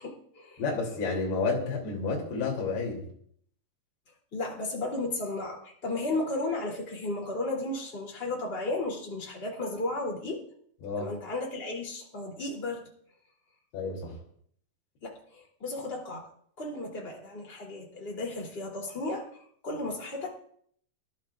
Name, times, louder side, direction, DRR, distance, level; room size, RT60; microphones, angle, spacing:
voice 1, 0.0-0.6 4.3-10.4 11.0-12.8 15.0-16.3 16.6-20.3, left 2 dB, 15° left, -2 dB, 2.1 m, -34 dB
voice 2, 0.6-3.0 10.8-11.1 13.7-14.1, left 4 dB, 60° left, -1 dB, 4.6 m, -30 dB
25.0 x 12.0 x 2.4 m, 0.64 s
omnidirectional pair, 5.3 m